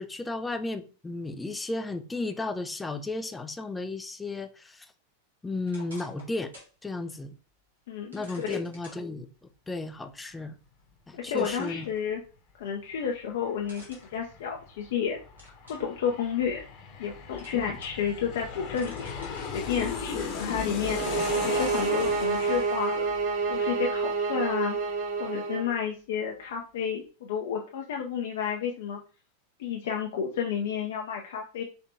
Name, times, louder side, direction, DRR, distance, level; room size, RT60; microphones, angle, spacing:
voice 1, 0.0-4.9 5.4-6.5 6.8-7.3 8.1-9.3 9.7-10.6 11.1-11.9 17.5-17.6, left 2 dB, 10° left, 0.4 m, -34 dB
sound 1, 5.7-6.8 7.2-7.3 8.1-9.0 10.8-10.9 11.3-12.4 13.6-14.9 15.4-15.9 16.4-17.1 17.4-18.1 18.5-19.5 20.2-20.4, left 1 dB, 75° right, 1.8 m, -50 dB
voice 2, 7.9-8.6 11.1-12.2 12.6-15.2 15.7-16.7 17.0-19.2 19.5-23.1 23.5-24.8 25.2-29.0 29.6-31.6, left 7 dB, 55° left, 0.6 m, -31 dB
Aircraft, 12.8-12.9 13.1-24.4 24.7-24.8, left 5 dB, 35° left, 0.9 m, -38 dB
sound 2, 20.8-25.7, right 4 dB, 45° right, 0.9 m, -28 dB
4.4 x 3.3 x 2.7 m
figure-of-eight pair, 90°, 0 cm